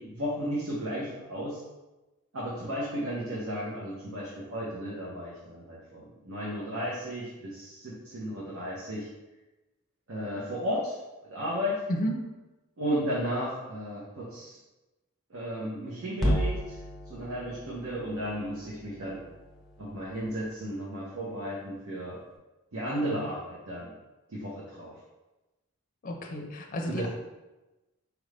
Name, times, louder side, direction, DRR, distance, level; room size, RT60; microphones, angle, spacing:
voice 1, 0.0-1.6 2.3-9.1 10.1-11.8 12.8-14.6 15.3-16.8 17.1-19.2 19.8-22.2 22.7-23.9 24.3-24.9 26.9-27.1, equal, 65° right, -7 dB, 0.9 m, -34 dB
sound 1, 16.2-20.5, equal, ahead, 0.6 m, -34 dB
voice 2, 26.0-27.1, equal, 40° left, 2 dB, 0.5 m, -31 dB
4.6 x 2.6 x 3.3 m, 1.1 s
head